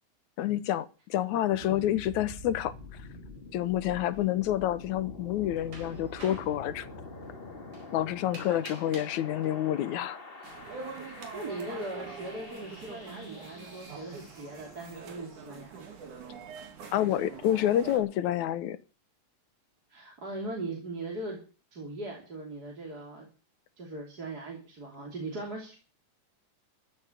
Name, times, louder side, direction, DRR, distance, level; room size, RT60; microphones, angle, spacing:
voice 1, 0.4-2.7 3.5-6.9 7.9-10.2 16.9-18.8, left 12 dB, 75° left, 2.4 m, -28 dB
sound 1, 1.5-15.3, left 2 dB, 25° left, 1.3 m, -46 dB
voice 2, 1.6-2.0 8.4-8.6 11.1-15.9 19.9-21.4 21.7-23.3 23.8-25.8, right 2 dB, 30° right, 3.4 m, -40 dB
sound 2, 4.1-4.4 5.4-6.6 7.7-7.8 8.3-10.3 10.7-10.8 11.8-12.5, right 3 dB, 60° right, 5.6 m, -48 dB
sound 3, 10.4-18.0, right 5 dB, 75° right, 4.0 m, -44 dB
15.0 x 7.3 x 9.9 m
omnidirectional pair, 3.5 m